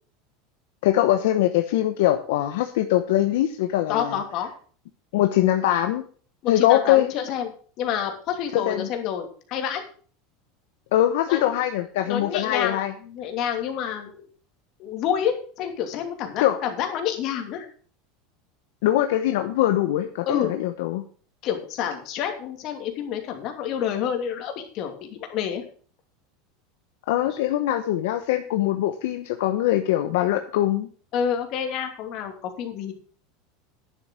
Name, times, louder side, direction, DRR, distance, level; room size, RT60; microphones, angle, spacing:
voice 1, 0.8-4.2 5.1-6.0 6.5-7.1 8.5-8.9 10.9-12.9 16.4-16.6 18.8-21.1 27.1-30.9, left 13 dB, 75° left, 7 dB, 0.9 m, -22 dB
voice 2, 3.9-4.5 6.4-7.5 7.8-9.8 11.3-11.5 12.1-14.2 14.8-17.7 20.3-20.5 21.4-25.6 31.1-32.9, left 8 dB, 50° left, 4 dB, 2.7 m, -28 dB
10.5 x 7.4 x 6.3 m, 0.44 s
supercardioid pair, 135°, 0 cm